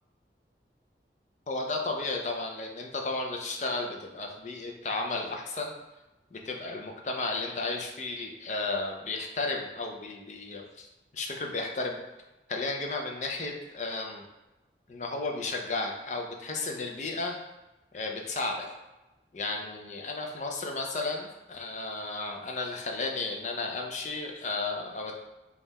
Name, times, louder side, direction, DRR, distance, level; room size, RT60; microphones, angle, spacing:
voice 1, 1.5-5.7 6.3-10.9 11.1-12.0 12.5-14.2 14.9-17.3 17.9-18.7 19.3-25.1, left 3 dB, 40° left, 1 dB, 0.5 m, -33 dB
3.6 x 2.4 x 4.1 m, 1.0 s
head